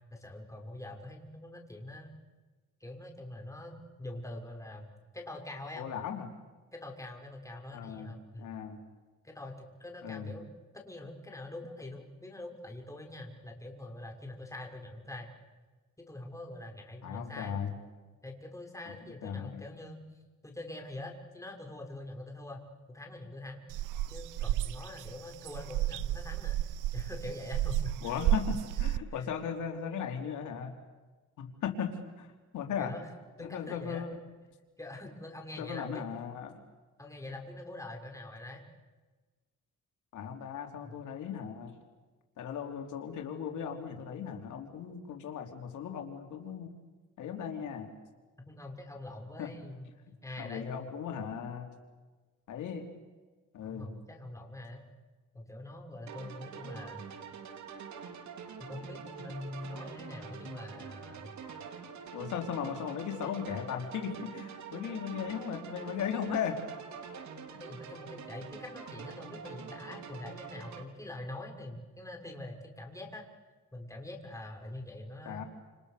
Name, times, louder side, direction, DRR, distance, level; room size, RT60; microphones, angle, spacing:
voice 1, 0.1-2.1 2.8-4.9 5.1-5.9 6.7-8.5 9.2-10.5 10.7-15.3 16.0-17.6 18.2-20.0 20.4-26.6 26.9-28.1 29.1-29.2 32.8-33.1 33.4-34.0 34.8-36.0 37.0-38.7 40.8-40.9 48.5-50.7 53.6-54.9 55.3-57.0 58.6-61.3 67.5-73.2 73.7-75.5, left 1 dB, 10° left, 2 dB, 6.3 m, -44 dB
voice 2, 5.8-6.3 7.7-8.1 8.4-8.8 10.0-10.3 17.0-17.7 19.2-19.6 28.0-30.7 31.4-31.9 32.2-32.9 33.4-34.1 35.6-36.6 40.1-41.8 42.4-46.7 47.2-47.9 49.4-49.5 50.4-51.7 52.5-52.9 53.5-53.9 62.1-66.6 75.3-75.4, left 7 dB, 75° left, 4 dB, 3.7 m, -37 dB
sound 1, 23.7-29.0, right 14 dB, 90° right, 0.8 m, -32 dB
sound 2, 56.1-70.8, right 6 dB, 65° right, 3.8 m, -46 dB
29.5 x 29.0 x 6.9 m, 1.3 s
cardioid pair, 90°, 30 cm